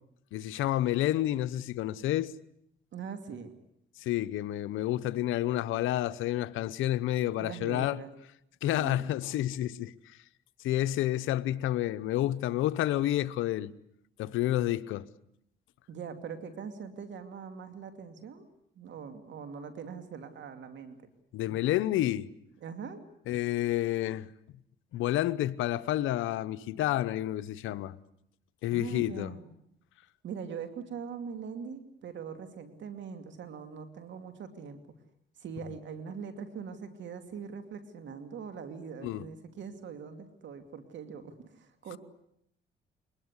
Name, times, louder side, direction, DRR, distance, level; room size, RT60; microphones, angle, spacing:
voice 1, 0.3-2.3 4.0-8.0 8.6-10.2 10.6-13.7 14.2-15.1 21.3-22.3 23.3-24.3 24.9-28.0 28.6-29.3 39.0-39.3, left 14 dB, 90° left, 0.9 m, -29 dB
voice 2, 2.9-3.6 7.4-8.1 8.7-9.1 15.9-18.5 18.8-21.0 22.6-23.0 28.7-29.5 30.2-34.8 35.4-42.0, right 6 dB, 70° right, 2.5 m, -42 dB
23.0 x 20.0 x 9.7 m
cardioid pair, 90°, 20 cm